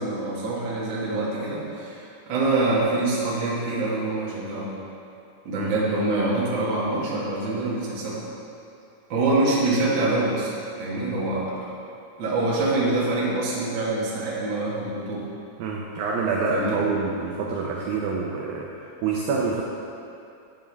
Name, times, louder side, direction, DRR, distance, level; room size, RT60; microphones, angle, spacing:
voice 1, 0.0-4.7 5.4-8.2 9.1-10.5 10.8-11.7 12.2-15.3 16.5-16.8, right 2 dB, 60° right, -7 dB, 1.1 m, -25 dB
voice 2, 15.6-19.6, right 4 dB, 85° right, -3 dB, 2.0 m, -27 dB
10.5 x 7.6 x 3.4 m, 2.6 s
omnidirectional pair, 5.0 m